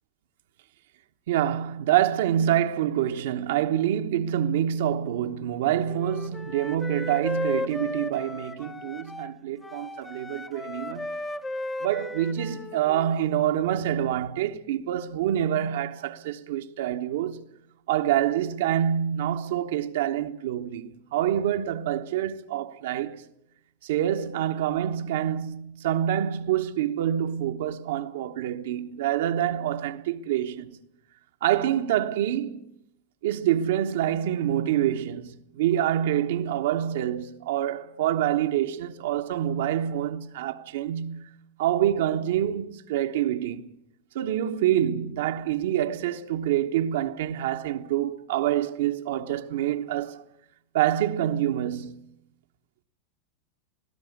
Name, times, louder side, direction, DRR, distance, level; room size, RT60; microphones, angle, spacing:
voice 1, 1.3-11.1 11.8-17.4 17.9-23.2 23.8-30.8 31.4-32.7 33.2-41.3 41.6-43.7 44.1-50.2 50.7-52.0, right 11 dB, 70° right, 1.1 m, -26 dB
Wind instrument woodwind instrument, 5.9-9.3 9.6-13.2, left 2 dB, 15° left, 0.9 m, -35 dB
19.0 x 17.0 x 9.5 m
hypercardioid pair, 105°, 0 cm